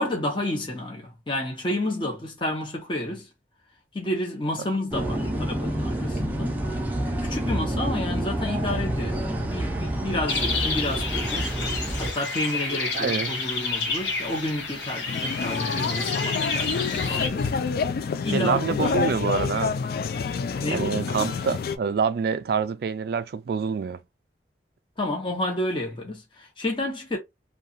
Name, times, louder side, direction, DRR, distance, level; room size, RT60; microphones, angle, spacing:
voice 1, 0.0-3.3 3.9-6.7 7.2-11.5 12.0-17.5 18.2-19.1 20.6-21.3 25.0-27.2, left 1 dB, 30° left, 0.7 m, -30 dB
sound 1, 4.9-12.1, right 1 dB, 10° right, 0.5 m, -28 dB
sound 2, 10.3-17.3, left 4 dB, 80° left, 0.9 m, -30 dB
voice 2, 12.7-13.3 18.3-19.8 20.7-24.0, right 6 dB, 60° right, 0.3 m, -26 dB
sound 3, 15.1-21.8, left 5 dB, 55° left, 0.3 m, -28 dB
2.8 x 2.3 x 2.5 m
head